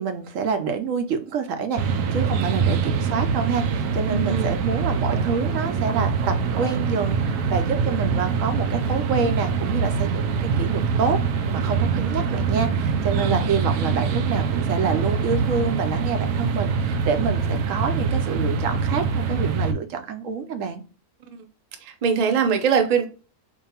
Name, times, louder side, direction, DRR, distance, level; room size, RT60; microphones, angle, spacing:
voice 1, 0.0-11.2 11.5-20.8, right 5 dB, 65° right, 7 dB, 0.9 m, -27 dB
sound 1, 1.8-19.7, right 5 dB, 90° right, 1.1 m, -24 dB
voice 2, 4.1-4.5 13.2-13.3 21.3-21.4 21.8-23.1, right 6 dB, 50° right, 5 dB, 0.4 m, -22 dB
4.6 x 2.6 x 2.8 m, 0.35 s
omnidirectional pair, 1.6 m